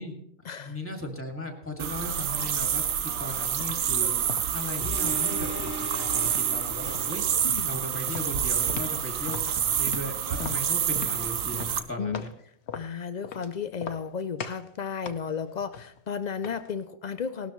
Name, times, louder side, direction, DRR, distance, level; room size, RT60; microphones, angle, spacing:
voice 1, 0.0-7.2 7.6-12.3, left 1 dB, 10° left, 3 dB, 2.0 m, -37 dB
sound 1, 1.8-11.8, right 9 dB, 70° right, 1.2 m, -28 dB
sound 2, 3.6-3.9 4.3-5.2 5.6-6.5 6.9-7.2 7.5-7.7 8.1-9.0 9.3-12.4 12.7-13.5 13.8-14.1 14.4-14.7 15.1-16.7, left 6 dB, 55° left, 1.0 m, -39 dB
sound 3, 4.8-7.7 8.3-8.4, left 1 dB, 40° left, 1.3 m, -38 dB
voice 2, 7.4-7.8 12.0-12.3 12.7-17.5, left 6 dB, 85° left, 11 dB, 0.3 m, -33 dB
18.0 x 12.5 x 3.1 m, 0.72 s
omnidirectional pair, 1.5 m